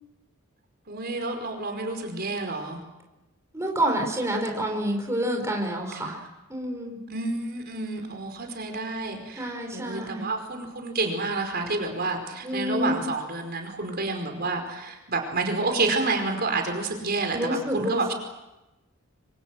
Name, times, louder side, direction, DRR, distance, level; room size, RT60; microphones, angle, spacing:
voice 1, 0.9-2.8 6.0-6.2 7.1-18.1, right 3 dB, 45° right, 4 dB, 5.0 m, -29 dB
voice 2, 3.5-6.2 6.5-7.0 9.4-10.2 12.4-13.0 17.3-18.1, equal, 15° right, 1 dB, 4.8 m, -28 dB
27.0 x 26.0 x 7.7 m, 0.99 s
head